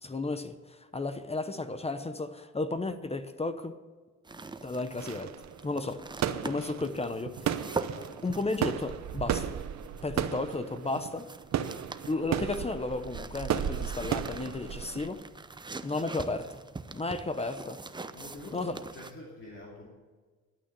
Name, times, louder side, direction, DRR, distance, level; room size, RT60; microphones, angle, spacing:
voice 1, 0.0-3.8 4.6-5.3 5.6-6.0 6.4-7.6 8.2-9.5 10.0-11.3 12.1-15.2 15.8-16.6 16.9-17.8 18.5-18.8, left 3 dB, 20° left, 11 dB, 0.9 m, -33 dB
sound 1, 4.2-19.1, right 3 dB, 15° right, 0.7 m, -44 dB
sound 2, 5.0-15.1, right 9 dB, 60° right, 0.9 m, -34 dB
voice 2, 7.8-8.2 18.1-19.9, left 1 dB, 40° left, -2 dB, 2.6 m, -46 dB
12.0 x 9.0 x 6.9 m, 1.4 s
cardioid pair, 90°, 30 cm